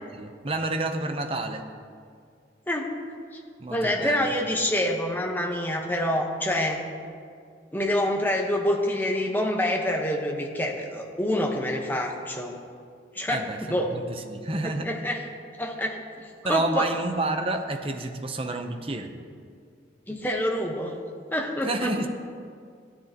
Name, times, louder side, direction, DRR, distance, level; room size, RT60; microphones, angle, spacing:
voice 1, 0.1-1.7 3.6-4.3 13.3-14.9 16.4-19.1 21.6-22.1, right 2 dB, 30° right, 6 dB, 0.7 m, -29 dB
voice 2, 3.7-6.8 7.7-12.6 13.1-13.4 13.7-14.0 14.6-15.2 15.6-16.9 20.1-21.0 21.3-22.1, left 1 dB, 10° left, 0 dB, 1.1 m, -27 dB
15.5 x 12.5 x 3.0 m, 2.2 s
head